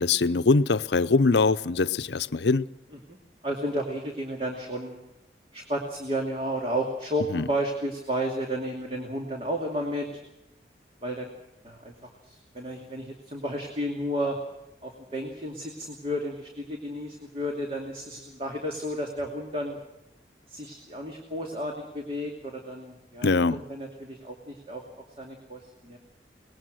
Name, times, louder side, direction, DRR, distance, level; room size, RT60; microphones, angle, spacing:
voice 1, 0.0-2.7 7.3-7.5 23.2-23.6, left 3 dB, 85° left, 0.7 m, -22 dB
voice 2, 3.4-4.9 5.5-10.1 11.0-11.3 11.6-14.4 14.8-19.8 20.5-24.8 25.2-26.0, equal, 35° right, 2.6 m, -32 dB
23.5 x 20.0 x 6.4 m
head